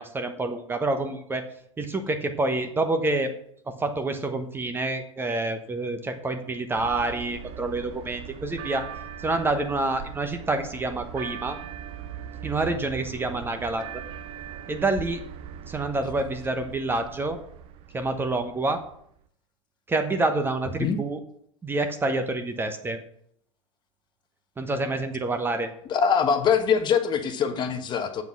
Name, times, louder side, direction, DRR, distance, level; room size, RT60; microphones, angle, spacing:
voice 1, 0.0-1.5 1.8-3.3 3.7-8.9 9.2-11.6 12.4-14.0 14.7-15.2 15.7-17.4 17.9-18.8 19.9-21.2 21.6-23.0 24.6-25.7, right 2 dB, 15° right, 7 dB, 1.0 m, -27 dB
sound 1, 6.7-19.2, right 9 dB, 35° right, 0.7 m, -40 dB
voice 2, 25.9-28.2, left 6 dB, 30° left, 7 dB, 1.1 m, -23 dB
8.1 x 7.1 x 6.0 m, 0.67 s
figure-of-eight pair, 95°, 16 cm